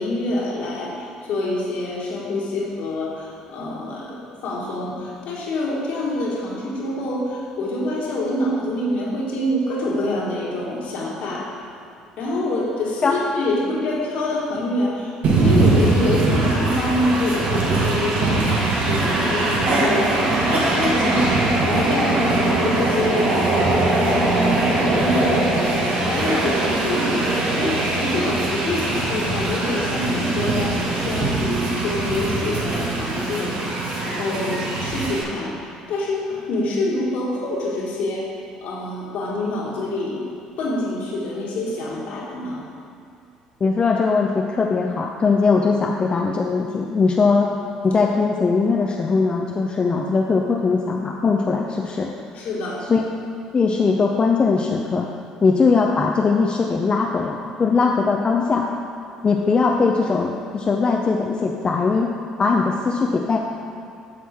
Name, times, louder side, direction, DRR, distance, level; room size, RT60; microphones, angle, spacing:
voice 1, 0.0-11.5 12.2-25.7 26.1-33.5 34.0-38.2 38.6-40.3 40.6-42.6 52.3-52.8, left 2 dB, 65° left, -4 dB, 1.8 m, -26 dB
Train, 15.2-35.2, right 2 dB, 60° right, 1.4 m, -21 dB
voice 2, 43.6-47.5 47.8-52.1 52.9-53.0 53.5-55.1 55.4-58.7 59.2-62.1 62.4-63.4, left 4 dB, 35° left, 0 dB, 0.6 m, -20 dB
8.6 x 6.0 x 3.6 m, 2.5 s
hypercardioid pair, 60°, 3 cm